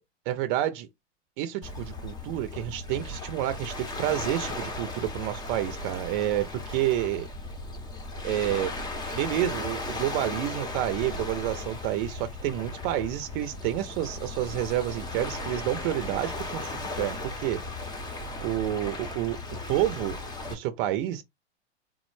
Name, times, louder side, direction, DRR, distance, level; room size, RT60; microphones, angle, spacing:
voice 1, 0.3-0.9 1.4-7.3 8.2-8.7 9.1-17.6 18.4-19.4 19.7-20.2 20.5-21.2, right 13 dB, 45° right, 0.7 m, -29 dB
Waves surf, 1.6-20.5, left 2 dB, 10° left, 0.8 m, -36 dB
3.7 x 2.1 x 3.1 m
hypercardioid pair, 110°, 35 cm